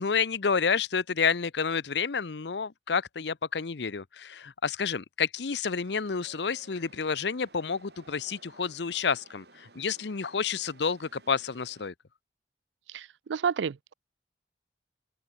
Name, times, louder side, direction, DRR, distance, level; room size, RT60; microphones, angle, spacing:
voice 1, 0.0-11.9, left 5 dB, 75° left, 0.7 m, -29 dB
Chatter / Subway metro underground, 5.8-11.9, right 2 dB, 65° right, 4.8 m, -57 dB
voice 2, 12.9-13.9, right 6 dB, 85° right, 0.4 m, -31 dB
open air
head